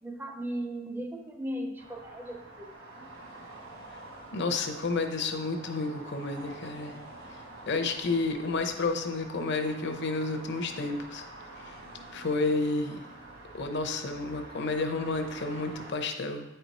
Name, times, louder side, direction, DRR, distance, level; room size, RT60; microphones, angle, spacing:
voice 1, 0.0-3.0, right 1 dB, 10° right, 3 dB, 0.5 m, -37 dB
sound 1, 1.8-15.9, right 2 dB, 65° right, 1.4 m, -47 dB
voice 2, 4.3-7.0 7.7-11.2 11.6-11.8 12.1-13.0 13.5-16.4, left 3 dB, 55° left, 6 dB, 0.7 m, -31 dB
8.7 x 4.5 x 4.1 m, 1.1 s
head